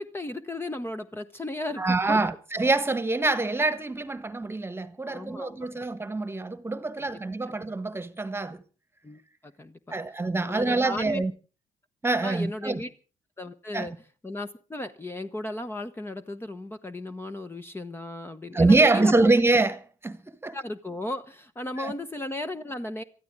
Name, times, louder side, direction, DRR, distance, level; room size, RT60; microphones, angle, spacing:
voice 1, 0.0-2.2 5.1-5.6 7.0-7.1 7.5-7.6 9.0-10.0 10.4-11.2 12.2-12.9 13.4-13.9 14.2-19.1 20.5-23.0, left 1 dB, 20° left, 1.0 m, -35 dB
voice 2, 1.8-8.6 9.9-11.3 12.0-12.8 13.7-13.9 18.5-20.6 21.8-21.9, right 3 dB, 20° right, 1.4 m, -25 dB
23.0 x 13.5 x 3.7 m
cardioid pair, 80°, 13 cm